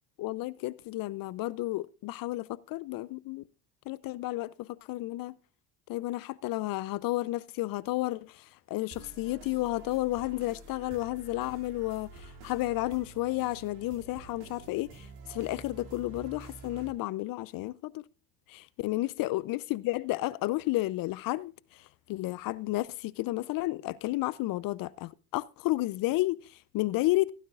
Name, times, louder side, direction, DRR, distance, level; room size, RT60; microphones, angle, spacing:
voice 1, 0.2-3.4 3.9-5.4 5.9-18.0 18.5-27.3, left 18 dB, 50° left, 0.6 m, -32 dB
sound 1, 8.9-16.9, right 3 dB, 65° right, 2.6 m, -49 dB
15.5 x 12.5 x 2.4 m
hypercardioid pair, 65°, 45 cm